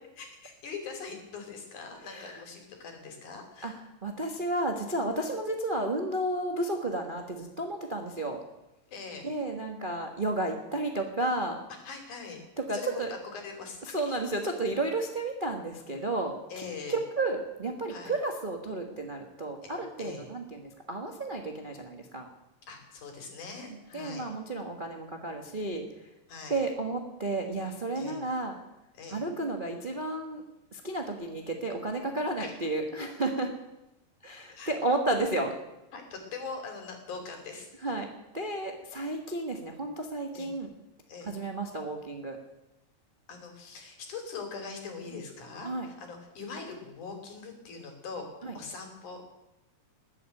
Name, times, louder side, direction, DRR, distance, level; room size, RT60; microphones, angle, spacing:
voice 1, 0.2-3.8 8.9-9.3 11.8-12.4 12.7-14.0 16.5-17.0 17.9-18.1 19.6-20.3 22.7-24.3 26.3-26.6 27.9-28.2 28.9-29.3 32.4-32.6 34.5-34.7 35.9-37.9 40.3-40.5 41.1-41.3 43.3-48.2 48.5-49.2, left 4 dB, 65° left, 4 dB, 4.3 m, -42 dB
voice 2, 4.0-8.4 9.2-11.6 12.7-13.1 13.9-16.3 16.9-22.3 23.7-25.8 26.5-28.5 29.1-30.4 30.7-33.5 34.2-35.5 37.8-38.1 38.3-40.7 41.2-42.4 45.6-45.9 48.4-48.5, right 2 dB, 75° right, 2 dB, 0.4 m, -32 dB
20.0 x 7.9 x 9.0 m, 0.95 s
omnidirectional pair, 3.9 m